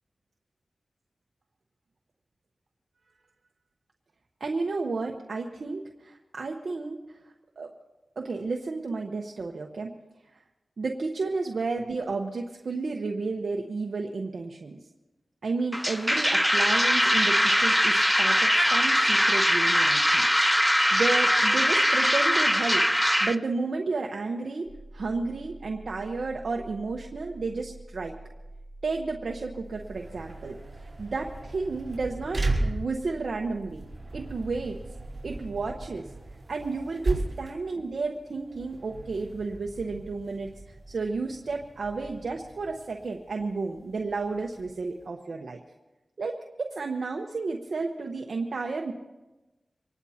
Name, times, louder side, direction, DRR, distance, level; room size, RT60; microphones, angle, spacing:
voice 1, 4.4-7.0 7.6-7.7 8.2-9.9 10.8-14.8 15.4-20.3 20.9-22.8 23.2-24.7 24.9-28.1 28.8-30.6 31.0-33.8 34.1-34.8 35.2-36.1 36.5-40.5 40.9-45.6 46.2-48.9, right 3 dB, 75° right, 1 dB, 1.1 m, -32 dB
sound 1, 15.7-23.4, equal, 5° left, 0.5 m, -22 dB
sound 2, 24.6-35.8, right 2 dB, 45° left, 5.9 m, -46 dB
sound 3, 29.7-45.0, right 2 dB, 35° right, 5.1 m, -36 dB
25.5 x 19.0 x 2.9 m, 1.1 s
wide cardioid pair, 60°, 0 cm